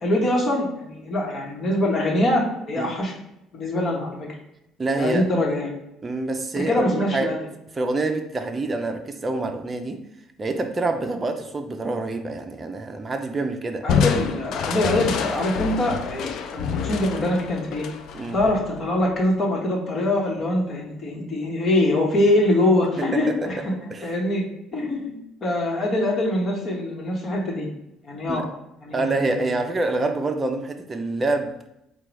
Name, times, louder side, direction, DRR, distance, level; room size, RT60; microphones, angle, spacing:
voice 1, 0.0-3.1 3.5-4.3 5.0-5.7 6.5-7.4 13.8-17.9 18.3-23.7 24.0-24.4 24.7-27.7 28.0-28.5 28.8-29.5, left 1 dB, 50° left, -2 dB, 1.1 m, -23 dB
voice 2, 4.8-5.3 6.0-7.3 7.8-10.0 10.4-13.9 18.1-18.4 23.3-23.5 23.9-24.2 28.3-28.5 28.9-31.7, right 2 dB, 30° right, 5 dB, 0.5 m, -26 dB
Crushing, 13.9-19.3, left 7 dB, 65° left, 0.4 m, -28 dB
3.9 x 2.3 x 4.6 m, 0.82 s
hypercardioid pair, 65°, 0 cm